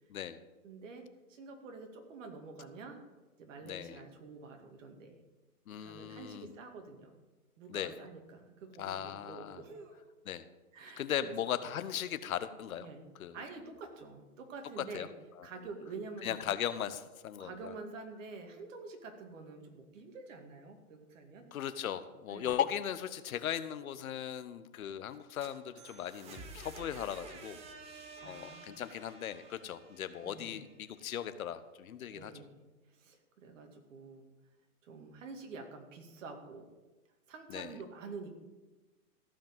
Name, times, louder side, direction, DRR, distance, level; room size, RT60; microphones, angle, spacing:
voice 1, 0.6-3.0 3.4-5.2 5.8-7.2 7.6-10.1 10.7-11.3 12.8-13.0 13.3-15.1 15.4-16.4 17.4-21.4 22.3-22.6 28.2-28.8 30.2-30.7 32.1-32.6 32.9-34.3 34.8-36.7 37.3-38.4, right 4 dB, 55° right, 4 dB, 2.3 m, -48 dB
voice 2, 3.6-4.0 5.7-6.5 7.7-8.0 8.8-9.6 10.3-10.4 10.8-12.9 13.2-13.4 14.8-15.1 15.4-15.5 16.2-17.7 21.5-27.6 28.2-32.4 37.5-37.7, left 10 dB, 65° left, 13 dB, 0.9 m, -38 dB
sound 1, 25.1-31.0, right 3 dB, 15° right, 0.8 m, -51 dB
15.0 x 5.2 x 7.2 m, 1.2 s
hypercardioid pair, 140°, 45 cm